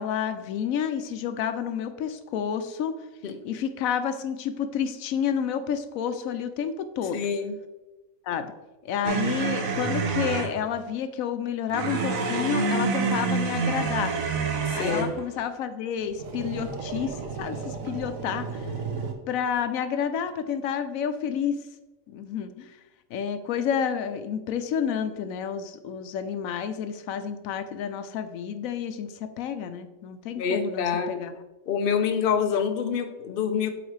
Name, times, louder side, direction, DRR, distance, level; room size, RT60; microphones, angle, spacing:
voice 1, 0.0-3.0 3.4-7.2 8.2-8.5 8.8-14.2 14.7-18.7 19.3-21.6 22.1-22.8 23.1-31.3, left 8 dB, 90° left, 10 dB, 1.0 m, -30 dB
voice 2, 7.1-7.5 14.7-15.1 30.4-31.2 31.7-33.7, left 6 dB, 55° left, 6 dB, 0.7 m, -26 dB
sound 1, 9.0-10.6 11.7-15.2 16.1-19.1, right 4 dB, 85° right, 1.2 m, -28 dB
7.9 x 3.9 x 3.2 m, 1.1 s
omnidirectional pair, 1.4 m